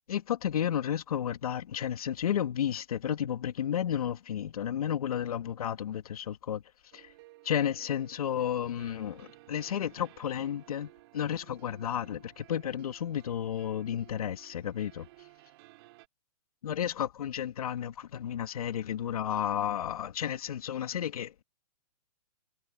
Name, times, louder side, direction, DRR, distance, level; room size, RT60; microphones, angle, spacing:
voice 1, 0.1-6.6 6.9-7.1 7.4-15.1 16.6-21.4, left 9 dB, 65° left, 2.4 m, -32 dB
sound 1, 6.9-16.1, right 20 dB, 40° right, 4.4 m, -57 dB
hypercardioid pair, 150°, 20 cm